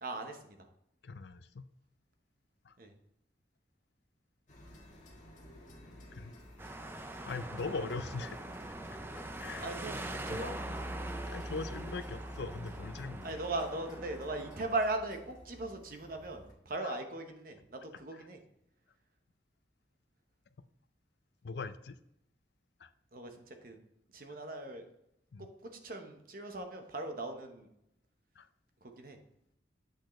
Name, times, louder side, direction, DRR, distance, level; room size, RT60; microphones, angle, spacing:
voice 1, 0.0-0.6 2.8-2.9 9.6-10.5 13.2-18.4 23.1-23.8 24.1-24.9 25.4-27.7 28.8-29.2, right 2 dB, 50° right, 5 dB, 1.0 m, -39 dB
voice 2, 1.0-1.6 2.7-2.8 6.1-6.3 7.3-8.4 9.4-9.7 10.3-10.4 11.3-13.3 16.8-17.0 21.4-22.0 22.8-22.9 25.3-25.5 28.4-28.5, left 4 dB, 65° left, 12 dB, 0.5 m, -40 dB
sound 1, 4.5-16.5, equal, 40° left, 1.5 m, -49 dB
sound 2, 6.6-14.8, right 1 dB, 10° right, 0.4 m, -43 dB
8.1 x 6.4 x 3.1 m, 0.78 s
head